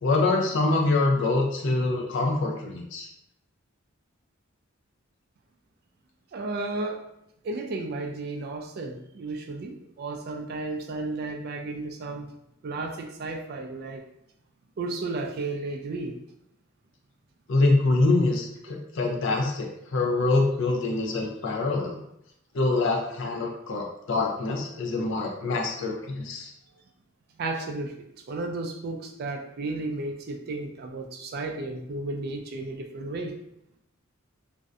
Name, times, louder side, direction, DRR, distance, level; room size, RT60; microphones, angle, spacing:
voice 1, 0.0-3.1 17.5-22.0 22.5-26.5, left 2 dB, 60° left, 1 dB, 0.4 m, -25 dB
voice 2, 6.3-7.1 7.4-12.3 12.6-14.0 14.8-16.2 27.4-27.9 28.3-33.3, right 2 dB, 45° right, 4 dB, 0.3 m, -33 dB
2.5 x 2.1 x 2.4 m, 0.78 s
head